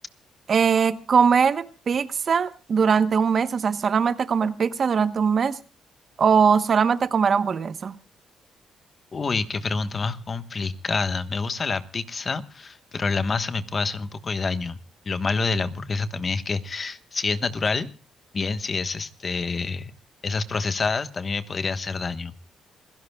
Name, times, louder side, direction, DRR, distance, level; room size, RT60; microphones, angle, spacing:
voice 1, 0.5-5.6 6.2-8.0, right 6 dB, 50° right, 13 dB, 1.0 m, -21 dB
voice 2, 9.1-14.8 15.1-17.9 18.3-19.9 20.2-22.3, left 4 dB, 35° left, 11 dB, 1.3 m, -27 dB
27.5 x 16.5 x 2.3 m, 0.33 s
cardioid pair, 90°, 0 cm